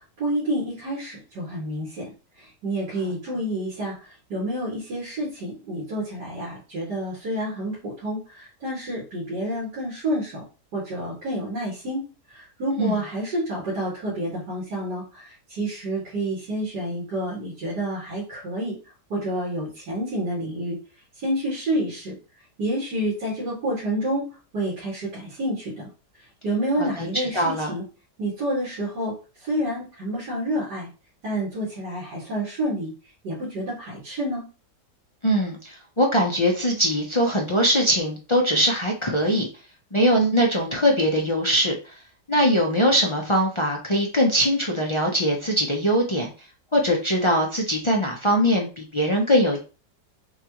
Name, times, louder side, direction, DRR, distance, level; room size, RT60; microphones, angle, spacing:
voice 1, 0.2-2.1 2.4-10.4 10.7-12.0 12.3-18.8 19.1-20.8 21.2-22.1 22.6-24.3 24.5-25.9 26.4-27.8 28.2-29.1 29.4-30.9 31.2-32.9 33.2-34.5, right 1 dB, 85° right, -7 dB, 2.4 m, -29 dB
voice 2, 26.8-27.7 35.2-39.5 39.9-41.9 42.3-46.3 46.7-49.6, equal, 45° left, -1 dB, 0.4 m, -22 dB
6.5 x 2.4 x 2.9 m, 0.34 s
omnidirectional pair, 1.7 m